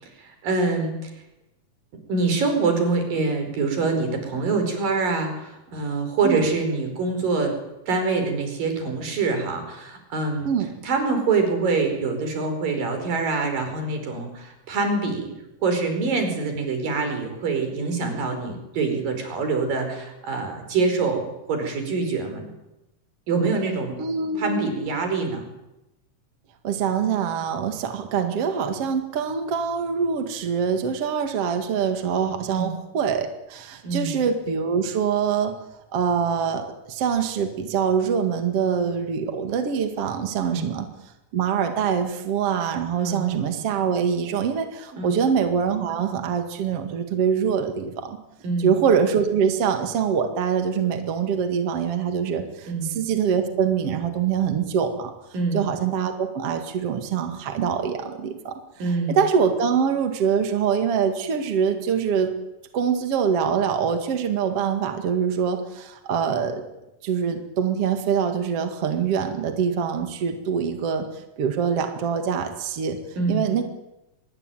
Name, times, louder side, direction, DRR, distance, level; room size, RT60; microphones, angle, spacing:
voice 1, 0.0-1.1 2.1-7.6 7.9-10.5 10.8-15.3 15.6-22.5 23.3-24.0 24.4-25.4 32.5-32.7 33.8-34.2 40.5-40.6 43.0-43.2 44.9-45.2 48.4-48.7 52.7-52.9 55.3-55.6 58.8-59.2 73.2-73.4, right 4 dB, 85° right, 6 dB, 6.5 m, -25 dB
voice 2, 24.0-24.7 26.6-35.5 35.9-40.9 41.3-48.2 48.6-55.1 55.5-62.3 62.7-66.6 67.0-71.1 71.4-73.0 73.3-73.6, right 7 dB, 50° right, 7 dB, 2.7 m, -24 dB
24.0 x 22.5 x 9.2 m, 0.93 s
omnidirectional pair, 3.8 m